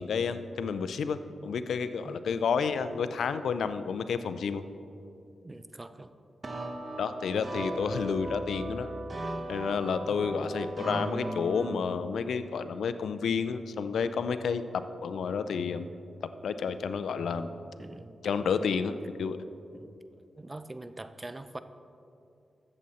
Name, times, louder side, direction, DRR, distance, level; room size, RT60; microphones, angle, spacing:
voice 1, 0.0-4.6 7.0-8.9 9.5-15.9 16.2-17.5 18.2-19.4, left 6 dB, 85° left, 11 dB, 0.5 m, -30 dB
voice 2, 5.4-6.1 10.1-10.3 17.7-18.2 19.7-20.0 20.4-21.6, right 2 dB, 25° right, 11 dB, 0.5 m, -44 dB
sound 1, 6.4-11.8, right 1 dB, 40° right, 1.0 m, -36 dB
13.5 x 7.8 x 4.2 m, 2.7 s
cardioid pair, 75°, 0 cm